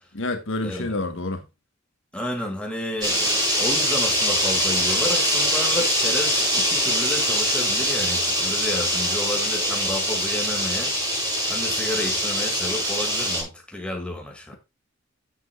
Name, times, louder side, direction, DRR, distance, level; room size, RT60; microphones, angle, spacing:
voice 1, 0.1-1.4, left 2 dB, 70° left, 1.4 m, -28 dB
voice 2, 2.1-10.9 11.5-14.6, left 1 dB, 5° left, 2.3 m, -31 dB
sound 1, 3.0-13.4, equal, 20° right, 5.4 m, -23 dB
10.5 x 7.7 x 2.4 m
head